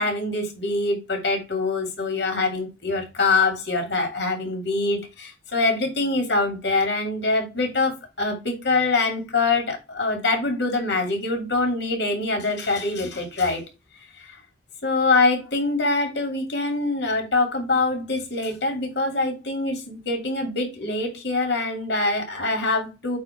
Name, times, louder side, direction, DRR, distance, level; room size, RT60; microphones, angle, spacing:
voice 1, 0.0-13.6 14.8-23.2, left 3 dB, 85° left, 3 dB, 2.9 m, -24 dB
8.5 x 2.8 x 5.9 m, 0.27 s
head